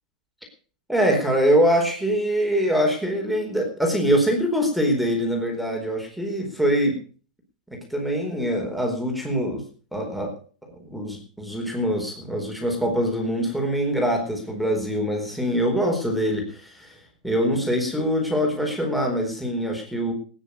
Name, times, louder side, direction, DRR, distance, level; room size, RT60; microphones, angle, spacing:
voice 1, 0.9-6.9 7.7-9.6 9.9-10.3 10.6-17.0 17.2-20.1, equal, ahead, 0 dB, 4.4 m, -24 dB
16.5 x 9.8 x 6.6 m, 0.41 s
hypercardioid pair, 135°, 4 cm